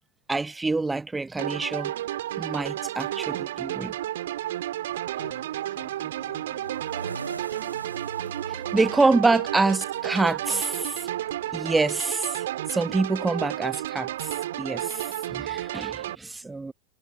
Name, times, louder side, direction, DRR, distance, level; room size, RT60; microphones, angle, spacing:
voice 1, 0.3-1.9 2.4-3.9 8.5-11.1 11.4-16.7, right 3 dB, 10° right, 1.0 m, -26 dB
sound 1, 1.4-16.1, right 13 dB, 60° right, 3.1 m, -32 dB
voice 2, 5.2-9.5, left 13 dB, 55° left, 5.3 m, -52 dB
sound 2, 6.6-11.6, right 3 dB, 80° right, 4.2 m, -42 dB
figure-of-eight pair, 90°, 0 cm